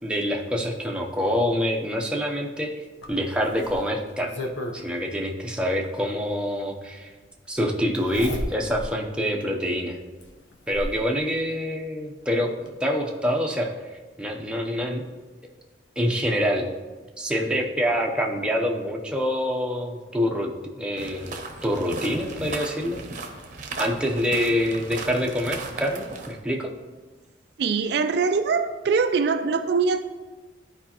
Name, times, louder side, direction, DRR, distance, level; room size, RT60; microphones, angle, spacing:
voice 1, 0.0-4.3 4.7-7.1 7.5-10.0 10.7-15.0 16.0-16.6 17.2-21.3 21.6-23.0 23.8-26.7, equal, 5° right, 0 dB, 0.6 m, -26 dB
Zipper (clothing), 3.0-4.8 6.2-6.3 7.9-8.9 9.4-9.5 10.2-11.0 12.2-12.3 12.7-12.8, left 1 dB, 70° left, 0.8 m, -34 dB
sound 1, 21.0-26.4, right 3 dB, 40° right, 0.8 m, -36 dB
voice 2, 27.6-30.1, right 5 dB, 55° right, 8 dB, 0.3 m, -23 dB
12.5 x 4.9 x 2.9 m, 1.3 s
head